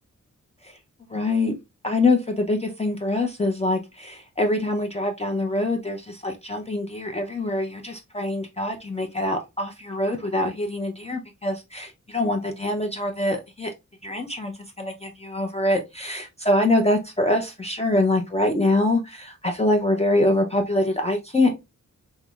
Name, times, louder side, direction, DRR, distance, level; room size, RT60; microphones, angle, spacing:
voice 1, 1.1-1.5 1.8-13.7 14.0-21.7, left 2 dB, 20° left, 3 dB, 0.5 m, -24 dB
5.4 x 2.0 x 2.3 m, 0.23 s
wide cardioid pair, 75°, 31 cm